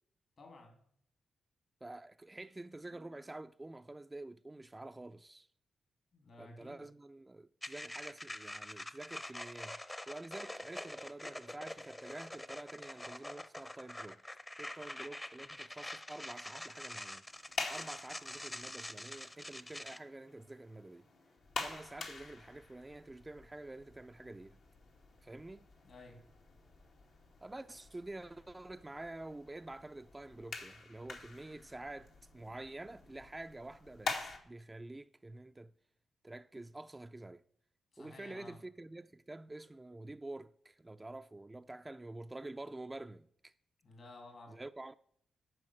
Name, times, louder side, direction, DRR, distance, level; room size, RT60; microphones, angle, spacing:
voice 1, 0.4-0.8 6.1-6.8 25.8-26.2 37.9-38.6 43.8-44.6, left 2 dB, 60° left, 2.9 m, -54 dB
voice 2, 1.8-5.5 6.4-9.8 10.1-14.2 14.6-17.3 17.7-21.1 21.6-24.6 25.2-25.7 27.4-35.7 36.2-37.4 38.0-43.5 44.5-44.9, right 2 dB, 20° right, 0.4 m, -48 dB
sound 1, 7.6-20.0, left 1 dB, 15° left, 0.8 m, -46 dB
sound 2, 17.3-34.4, left 4 dB, 75° left, 1.9 m, -47 dB
11.0 x 4.7 x 7.7 m
supercardioid pair, 55°, 0 cm